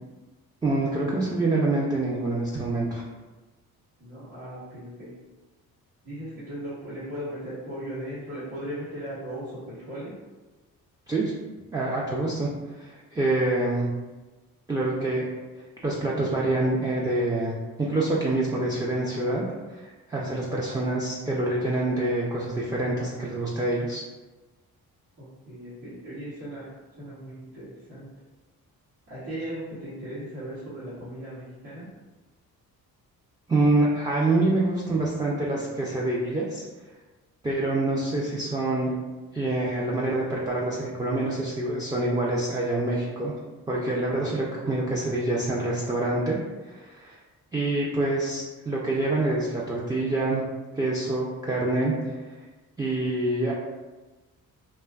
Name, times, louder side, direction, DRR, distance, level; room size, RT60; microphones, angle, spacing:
voice 1, 0.6-3.0 11.1-11.3 11.7-12.5 12.8-13.9 14.7-15.3 15.8-17.5 17.8-19.4 19.7-24.0 33.5-36.7 37.4-38.9 39.3-43.3 43.7-46.4 46.6-47.2 47.5-50.4 50.7-52.3 52.8-53.5, right 2 dB, 10° right, -5 dB, 0.3 m, -26 dB
voice 2, 4.0-5.1 6.0-10.1 25.2-26.7 27.0-28.1 29.1-31.9, right 1 dB, 75° right, -12 dB, 1.0 m, -37 dB
2.5 x 2.2 x 2.2 m, 1.2 s
cardioid pair, 65°, 38 cm